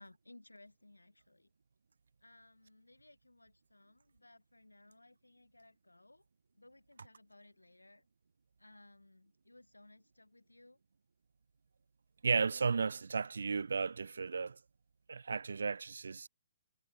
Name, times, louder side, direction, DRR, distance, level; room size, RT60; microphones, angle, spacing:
voice 1, 0.0-1.5 2.2-6.3 6.5-8.1 8.6-10.8, left 2 dB, 80° left, 2.1 m, -61 dB
voice 2, 12.2-14.6 15.1-16.3, right 5 dB, 65° right, 0.5 m, -34 dB
figure-of-eight pair, 125°, 0 cm